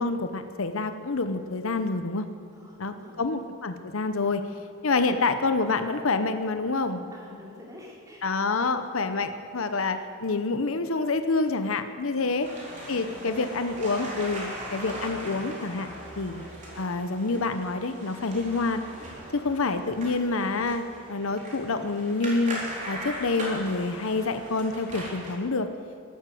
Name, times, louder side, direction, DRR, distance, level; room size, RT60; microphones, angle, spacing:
voice 1, 0.0-2.3 2.8-4.4 4.8-7.1 8.2-12.5 12.9-15.9 16.2-16.5 16.8-18.8 19.3-25.7, left 3 dB, 70° left, 9 dB, 0.8 m, -27 dB
voice 2, 2.5-3.3 7.1-8.3 12.1-12.4 12.9-13.5, left 1 dB, 15° right, -4 dB, 3.6 m, -48 dB
sound 1, 12.4-25.3, right 1 dB, 35° right, 3.8 m, -39 dB
14.0 x 12.5 x 7.8 m, 2.3 s
head